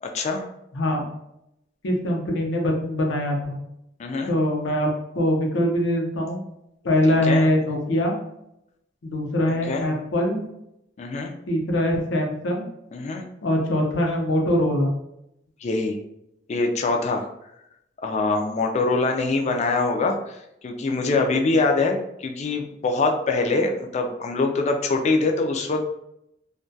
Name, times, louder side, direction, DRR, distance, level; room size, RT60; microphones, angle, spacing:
voice 1, 0.0-0.4 4.0-4.3 7.2-7.5 9.7-9.9 11.0-11.3 12.9-13.2 15.6-16.0 16.5-17.3 18.0-20.4 20.6-25.8, left 3 dB, 40° left, 3 dB, 0.3 m, -24 dB
voice 2, 0.7-1.1 1.8-3.6 4.3-4.9 5.1-6.4 6.8-8.2 9.0-10.4 11.5-12.7 13.4-14.9, left 1 dB, 85° left, 0 dB, 0.6 m, -23 dB
2.2 x 2.2 x 2.6 m, 0.82 s
head